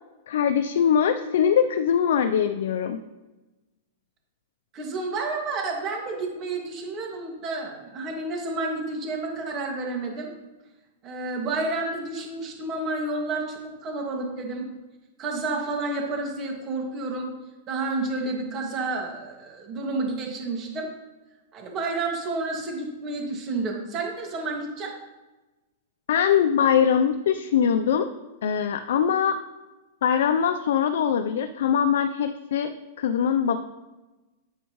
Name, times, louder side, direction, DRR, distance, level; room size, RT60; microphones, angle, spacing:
voice 1, 0.3-3.0 26.1-28.1 28.4-29.4 30.0-33.6, left 8 dB, 75° left, 8 dB, 0.6 m, -22 dB
voice 2, 4.7-10.3 11.0-14.7 15.2-17.3 17.7-20.9 21.5-24.9, right 3 dB, 30° right, 0 dB, 2.1 m, -30 dB
10.0 x 8.1 x 3.1 m, 1.1 s
hypercardioid pair, 145°, 0 cm